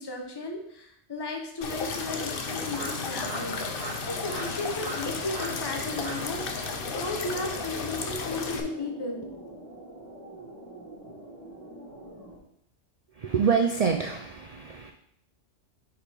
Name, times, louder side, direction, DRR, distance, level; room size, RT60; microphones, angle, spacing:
voice 1, 0.0-3.6 4.1-9.5, left 2 dB, 25° left, 2 dB, 0.9 m, -35 dB
sound 1, 1.6-8.6, left 4 dB, 55° left, 0.8 m, -33 dB
sound 2, 2.4-8.3, right 3 dB, 55° right, 1.0 m, -42 dB
sound 3, 5.2-12.4, right 2 dB, 35° right, 1.3 m, -45 dB
voice 2, 13.2-14.9, right 6 dB, 85° right, 4 dB, 0.3 m, -26 dB
5.2 x 5.0 x 4.4 m, 0.73 s
omnidirectional pair, 1.3 m